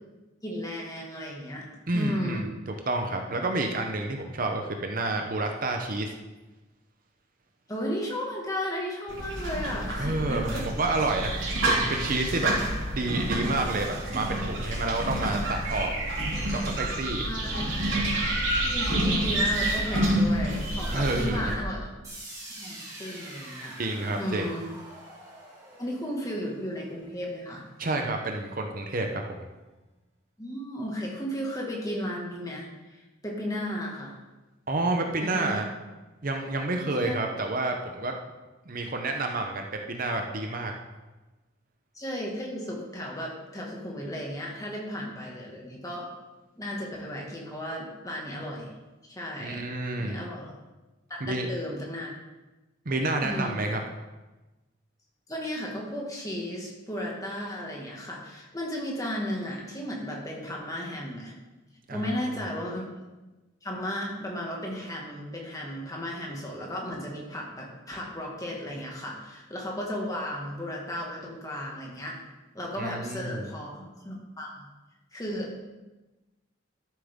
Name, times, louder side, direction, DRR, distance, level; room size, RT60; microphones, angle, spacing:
voice 1, 0.4-1.7 1.9-2.5 7.7-10.7 17.2-17.7 18.7-21.9 22.6-23.8 24.1-24.7 25.8-27.7 30.4-34.2 35.2-35.6 36.8-37.2 41.9-46.1 46.6-48.7 49.1-49.6 50.0-50.6 51.1-52.1 53.2-53.6 55.3-61.4 61.9-62.9 63.6-72.1 72.5-74.7 75.1-75.6, equal, 20° left, -2 dB, 1.9 m, -34 dB
voice 2, 1.9-6.1 10.0-12.5 12.9-15.9 16.5-17.2 20.9-21.5 23.8-24.4 27.8-29.4 34.7-35.7 36.2-38.2 38.7-40.7 49.4-50.2 51.2-51.5 52.9-53.8 61.9-62.1 72.8-73.5, right 2 dB, 45° right, 3 dB, 0.8 m, -29 dB
sound 1, 9.1-21.6, right 1 dB, 85° right, 2.9 m, -28 dB
sound 2, 22.0-28.0, right 1 dB, 15° right, 2.7 m, -45 dB
13.0 x 7.5 x 3.7 m, 1.1 s
head